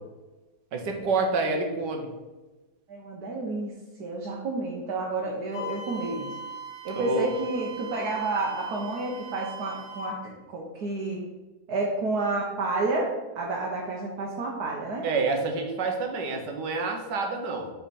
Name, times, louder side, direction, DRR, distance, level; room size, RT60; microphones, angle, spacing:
voice 1, 0.7-2.1 7.0-7.3 15.0-17.7, right 3 dB, 90° right, 3 dB, 1.7 m, -28 dB
voice 2, 2.9-3.7 4.0-6.4 6.8-11.2 11.7-15.1, right 2 dB, 65° right, -2 dB, 1.5 m, -30 dB
Wind instrument woodwind instrument, 5.5-10.2, right 2 dB, 50° left, 2.3 m, -40 dB
8.0 x 4.5 x 4.2 m, 1.1 s
omnidirectional pair, 1.8 m